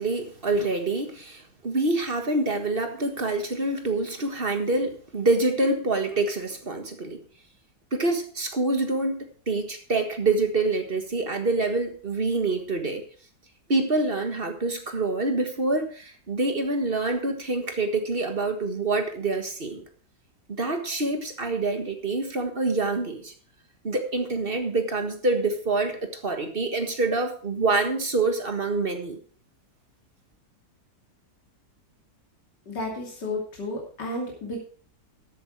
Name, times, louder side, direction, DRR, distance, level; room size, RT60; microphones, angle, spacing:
voice 1, 0.0-7.2 7.9-13.0 13.7-19.8 20.6-23.3 23.8-29.2, right 2 dB, 35° right, 6 dB, 1.6 m, -26 dB
voice 2, 32.7-34.6, left 2 dB, 80° left, -1 dB, 3.4 m, -32 dB
13.5 x 8.4 x 4.7 m, 0.42 s
omnidirectional pair, 1.8 m